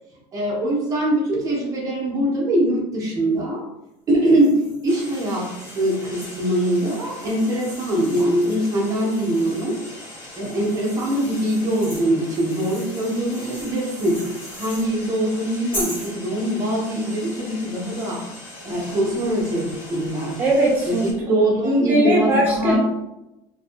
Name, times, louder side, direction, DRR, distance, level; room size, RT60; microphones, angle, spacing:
voice 1, 0.3-3.6 4.1-9.8 10.4-14.3 14.6-18.2 18.6-20.4 20.9-22.8, right 1 dB, 30° right, -2 dB, 0.7 m, -22 dB
sound 1, 4.2-9.8 10.4-14.9 15.7-16.2, equal, 15° left, 0.9 m, -39 dB
sound 2, 4.9-21.1, left 1 dB, 70° left, 0.9 m, -41 dB
voice 2, 20.4-21.1 21.6-22.8, right 1 dB, 15° right, -5 dB, 1.1 m, -19 dB
2.6 x 2.5 x 2.5 m, 0.91 s
cardioid pair, 155°, 12 cm